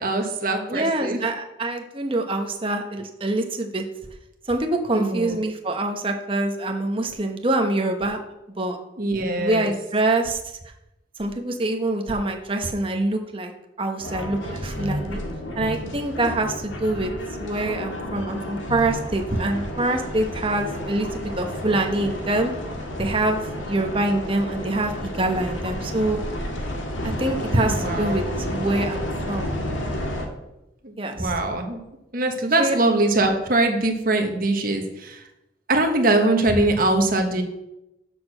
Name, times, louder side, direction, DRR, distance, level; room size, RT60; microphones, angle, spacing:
voice 1, 0.0-1.2 4.9-5.4 9.0-9.7 27.6-28.2 30.8-31.8 32.1-35.2 35.7-37.4, right 2 dB, 45° right, 4 dB, 1.3 m, -22 dB
voice 2, 0.7-3.8 4.5-8.2 8.6-8.8 9.2-10.4 11.2-13.5 13.8-15.2 15.6-17.1 17.4-22.5 23.0-23.4 23.7-26.2 27.0-28.2 28.5-29.5 31.0-31.3 32.6-32.8, right 2 dB, 25° right, 3 dB, 1.0 m, -25 dB
sound 1, 14.0-30.3, left 1 dB, 85° left, 1.7 m, -31 dB
6.8 x 6.3 x 6.5 m, 0.91 s
head